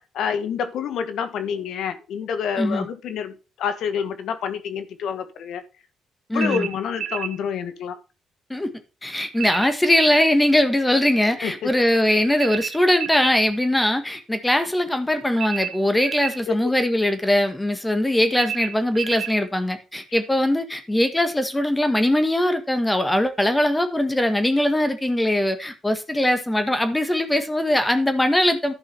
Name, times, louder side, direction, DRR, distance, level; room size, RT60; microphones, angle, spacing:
voice 1, 0.0-5.6 6.3-8.0 11.4-11.7 16.5-16.6, left 7 dB, 75° left, 1.5 m, -28 dB
voice 2, 6.3-6.7 8.5-8.7 9.0-28.7, left 1 dB, 10° left, 1.6 m, -21 dB
sound 1, 6.4-7.4 9.4-10.3 12.4-13.4 15.4-16.4 18.3-19.4, right 9 dB, 70° right, 0.8 m, -30 dB
11.5 x 5.5 x 5.6 m
cardioid pair, 90°, 0 cm